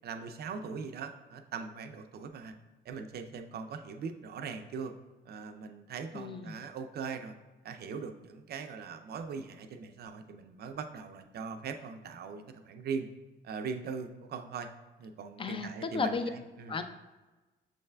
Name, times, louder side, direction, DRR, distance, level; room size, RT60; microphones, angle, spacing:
voice 1, 0.0-2.5 2.9-4.9 5.2-7.3 7.6-13.1 13.4-14.7 15.0-16.7, right 5 dB, 55° right, 7 dB, 0.4 m, -40 dB
voice 2, 6.1-6.6 15.4-16.3 16.7-16.8, left 4 dB, 25° left, 8 dB, 0.4 m, -34 dB
6.3 x 3.3 x 2.2 m, 1.2 s
cardioid pair, 90°, 20 cm